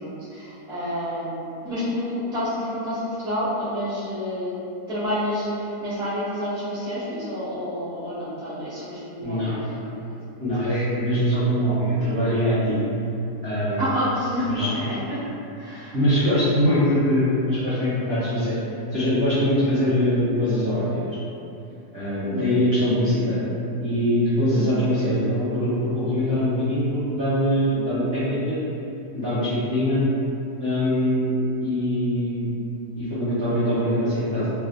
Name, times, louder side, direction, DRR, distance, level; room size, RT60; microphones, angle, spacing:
voice 1, 0.0-4.5 4.9-9.8 13.8-15.2 15.5-16.0 24.5-25.0, equal, 5° right, -12 dB, 0.4 m, -29 dB
voice 2, 9.2-9.9 10.4-12.8 13.4-13.9 14.5-14.7 15.9-18.6 18.9-21.0 21.9-23.4 23.8-28.6 29.1-30.1 30.6-31.3 31.6-32.5 33.0-34.5, equal, 50° right, -13 dB, 0.8 m, -23 dB
3.2 x 2.1 x 2.3 m, 2.7 s
omnidirectional pair, 1.7 m